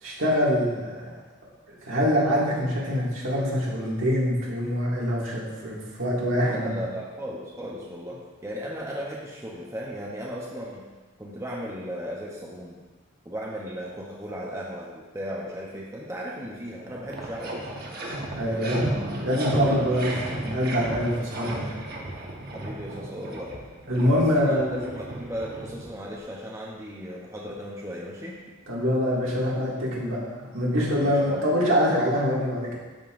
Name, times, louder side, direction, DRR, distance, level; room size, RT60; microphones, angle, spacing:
voice 1, 0.0-1.1 1.9-6.8 18.4-21.7 23.9-24.8 28.7-32.8, equal, 70° right, -5 dB, 2.1 m, -25 dB
voice 2, 6.4-10.9 11.2-12.8 13.2-17.6 18.5-18.8 20.0-20.2 22.5-23.5 24.3-28.4 31.0-31.6, equal, 15° right, -3 dB, 0.7 m, -36 dB
sound 1, 16.4-16.5 16.8-26.2, right 1 dB, 50° right, 1.1 m, -34 dB
12.5 x 5.4 x 2.5 m, 1.2 s
head